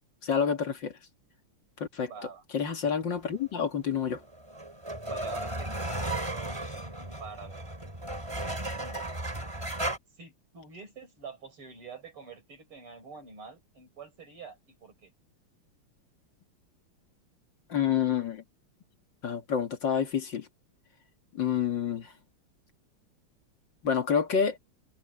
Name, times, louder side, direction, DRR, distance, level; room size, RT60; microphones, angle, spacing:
voice 1, 0.2-0.9 1.8-2.1 2.5-4.2 17.7-18.4 19.2-20.5 21.3-22.1 23.8-24.6, left 7 dB, 55° left, 2.7 m, -28 dB
voice 2, 2.0-2.4 5.0-7.7 8.7-9.0 10.2-15.1, right 5 dB, 75° right, 5.5 m, -46 dB
sound 1, 4.1-10.0, right 1 dB, 15° right, 3.5 m, -35 dB
omnidirectional pair, 2.4 m